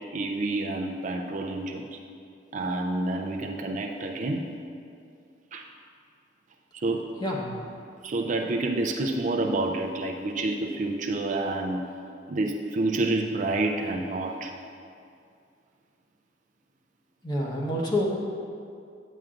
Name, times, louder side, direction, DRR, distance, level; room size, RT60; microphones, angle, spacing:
voice 1, 0.0-2.0 2.5-4.5 5.5-5.6 6.8-7.1 8.0-11.9 12.3-14.5, right 2 dB, 40° right, 2 dB, 0.4 m, -28 dB
voice 2, 17.2-18.1, left 1 dB, 25° left, -3 dB, 1.0 m, -27 dB
8.9 x 8.8 x 2.5 m, 2.4 s
head